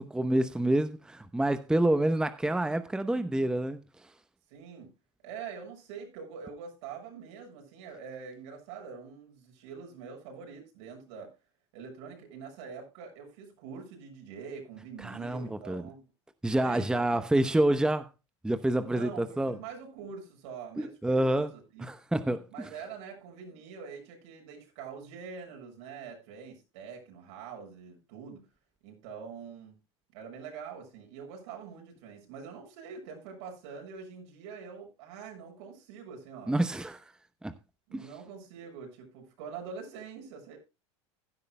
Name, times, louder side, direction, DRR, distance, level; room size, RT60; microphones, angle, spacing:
voice 1, 0.0-3.8 15.0-15.8 16.4-18.1 18.4-19.6 20.8-21.5 21.8-22.7 36.5-37.0 37.4-37.5 37.9-38.1, right 1 dB, 5° right, 0.9 m, -28 dB
voice 2, 4.5-4.9 5.2-11.3 11.7-16.0 16.5-17.3 18.8-21.9 22.5-28.4 28.8-29.7 30.1-36.6 37.9-40.6, right 6 dB, 65° right, 7.1 m, -44 dB
15.5 x 12.0 x 2.2 m
hypercardioid pair, 105°, 15 cm